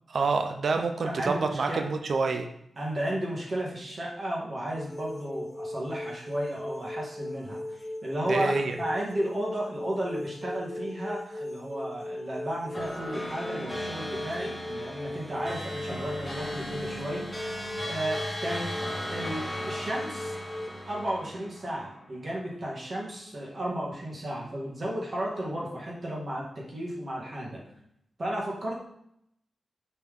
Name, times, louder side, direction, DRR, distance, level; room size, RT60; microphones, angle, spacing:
voice 1, 0.1-2.5 8.3-8.7, right 4 dB, 60° right, 6 dB, 0.6 m, -27 dB
voice 2, 1.0-1.8 2.8-17.3 17.8-18.7 19.1-20.4 20.9-27.6 28.2-28.8, right 1 dB, 40° right, -4 dB, 1.9 m, -33 dB
sound 1, 4.8-20.7, left 1 dB, 25° left, 0.4 m, -38 dB
sound 2, 12.7-22.4, equal, 5° left, 1.5 m, -37 dB
5.8 x 5.7 x 3.6 m, 0.74 s
wide cardioid pair, 155°, 0 cm